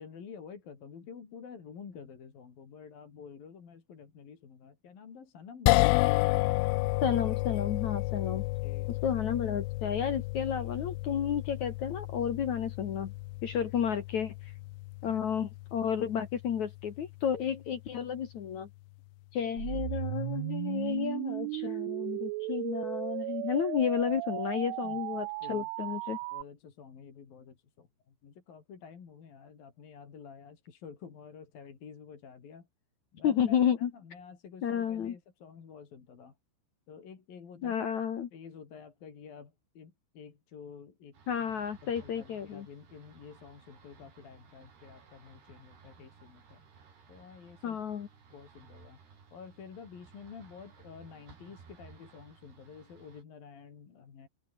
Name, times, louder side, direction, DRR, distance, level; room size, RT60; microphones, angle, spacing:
voice 1, 0.0-6.5 8.6-9.0 9.3-9.4 24.8-25.7 26.3-32.7 33.1-36.4 36.9-37.8 38.3-41.2 41.8-46.6 47.1-47.8 48.3-49.0 49.3-54.3, left 6 dB, 45° left, 5.1 m, -50 dB
sound 1, 5.7-18.0, left 23 dB, 80° left, 2.8 m, -32 dB
voice 2, 7.0-8.4 8.9-13.1 13.4-14.5 15.0-18.7 19.3-26.2 33.2-33.9 34.6-35.1 37.6-38.3 41.3-42.7 47.6-48.1, left 8 dB, 65° left, 1.9 m, -31 dB
sound 2, 19.6-26.4, right 23 dB, 80° right, 2.9 m, -36 dB
sound 3, 41.1-53.2, right 6 dB, 55° right, 7.0 m, -57 dB
open air
omnidirectional pair, 5.9 m